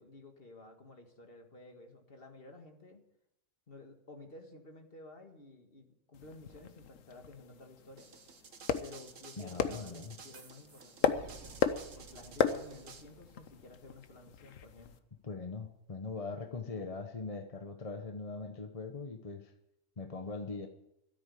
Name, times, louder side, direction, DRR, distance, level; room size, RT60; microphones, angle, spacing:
voice 1, 0.0-3.0 3.7-8.1 8.8-11.6 11.9-14.9, left 2 dB, 45° left, 4 dB, 2.0 m, -53 dB
sound 1, 6.1-15.0, left 7 dB, 85° left, 1.2 m, -37 dB
sound 2, 8.0-13.0, right 6 dB, 75° right, 1.6 m, -53 dB
voice 2, 9.4-10.2 15.2-19.5 20.0-20.7, left 4 dB, 30° left, 6 dB, 1.0 m, -41 dB
sound 3, 11.1-15.4, right 4 dB, 60° right, 2.1 m, -56 dB
13.5 x 8.4 x 9.9 m, 0.83 s
omnidirectional pair, 1.3 m